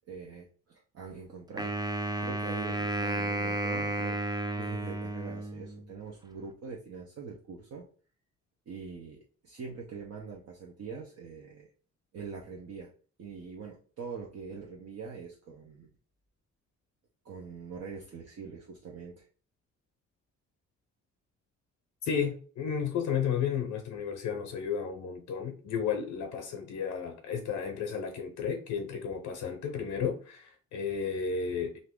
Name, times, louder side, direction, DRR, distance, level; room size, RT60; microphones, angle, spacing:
voice 1, 0.1-1.8 2.2-4.2 4.6-7.9 8.7-11.7 12.1-12.9 13.2-15.9 17.2-19.2, right 5 dB, 55° right, 0.8 m, -43 dB
Wind instrument woodwind instrument, 1.6-5.9, right 2 dB, 15° right, 0.5 m, -32 dB
voice 2, 22.0-31.8, left 7 dB, 75° left, 0.7 m, -33 dB
2.7 x 2.5 x 3.5 m
cardioid pair, 90°, 30 cm